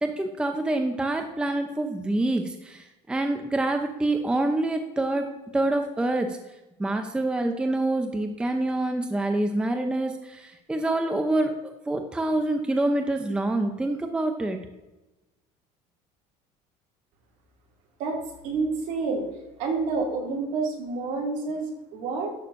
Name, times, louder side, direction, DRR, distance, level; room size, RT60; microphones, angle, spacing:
voice 1, 0.0-6.4 6.8-14.6, right 2 dB, 5° right, 5 dB, 0.6 m, -26 dB
voice 2, 18.0-19.3 19.6-22.3, right 4 dB, 65° right, -1 dB, 2.4 m, -29 dB
11.0 x 6.5 x 2.6 m, 1.0 s
cardioid pair, 130°, 14 cm